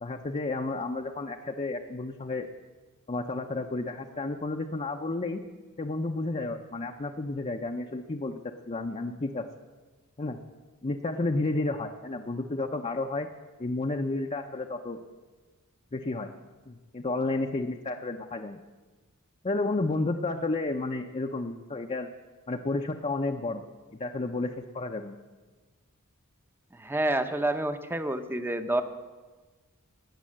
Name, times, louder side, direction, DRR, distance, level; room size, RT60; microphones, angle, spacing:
voice 1, 0.0-2.5 3.1-5.4 5.8-8.4 8.7-9.4 10.2-10.4 10.8-13.3 13.6-15.0 15.9-16.3 16.7-18.6 19.4-22.1 22.5-23.6 23.9-25.2, left 2 dB, 30° left, 3 dB, 0.6 m, -31 dB
voice 2, 26.8-28.8, right 1 dB, 10° right, 9 dB, 0.7 m, -28 dB
20.0 x 7.6 x 7.6 m, 1.3 s
head